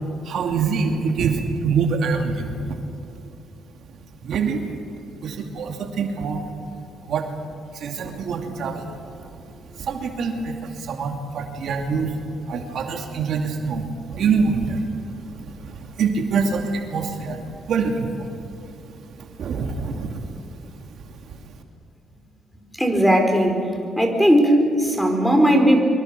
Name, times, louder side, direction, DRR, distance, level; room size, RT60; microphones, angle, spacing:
voice 1, 0.2-2.8 4.2-4.6 5.2-6.4 7.0-7.3 7.7-8.9 9.2-9.3 9.8-12.1 12.5-18.3 19.0-20.3 21.1-21.3, right 5 dB, 70° right, 3 dB, 2.6 m, -25 dB
voice 2, 22.7-23.7 23.9-25.8, equal, ahead, 4 dB, 4.2 m, -17 dB
23.5 x 23.5 x 6.9 m, 2.6 s
cardioid pair, 90°, 0 cm